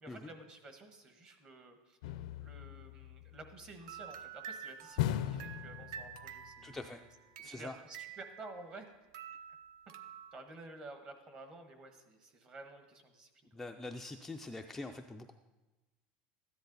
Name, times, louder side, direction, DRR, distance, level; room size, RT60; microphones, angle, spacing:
voice 1, 0.0-7.1 7.4-8.9 10.3-13.6, right 2 dB, 25° right, 6 dB, 1.2 m, -52 dB
sound 1, 2.0-3.7 5.0-6.5 6.8-6.9, left 12 dB, 85° left, 0.5 m, -38 dB
sound 2, 3.8-8.8 9.1-10.4, right 8 dB, 70° right, 0.7 m, -49 dB
voice 2, 6.6-7.0 7.4-7.8 13.5-15.3, left 2 dB, 5° left, 3 dB, 0.3 m, -44 dB
13.5 x 10.5 x 4.0 m, 1.1 s
cardioid pair, 170°, 4 cm